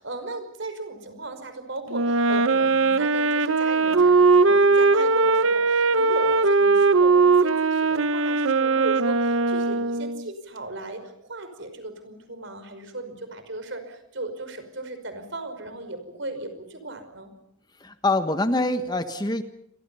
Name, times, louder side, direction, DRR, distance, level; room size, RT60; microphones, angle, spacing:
voice 1, 0.0-17.3, right 2 dB, 65° right, 9 dB, 5.5 m, -36 dB
Wind instrument woodwind instrument, 1.9-10.3, right 4 dB, 85° right, 1.0 m, -20 dB
voice 2, 17.8-19.4, left 2 dB, 20° left, 9 dB, 1.4 m, -24 dB
28.0 x 25.0 x 5.6 m, 0.73 s
head